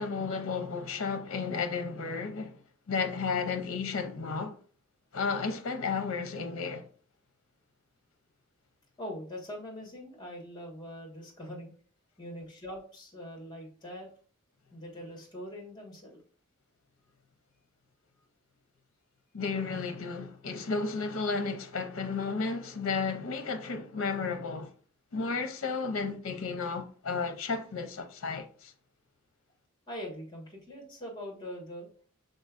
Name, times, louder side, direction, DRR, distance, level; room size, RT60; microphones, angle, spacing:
voice 1, 0.0-2.6 2.9-4.6 5.1-6.9 19.3-24.7 25.1-28.7, left 4 dB, 70° left, 0.6 m, -33 dB
voice 2, 9.0-11.7 12.2-14.1 14.7-16.2 29.9-31.9, equal, 20° left, 1.5 m, -42 dB
5.2 x 3.9 x 2.4 m
head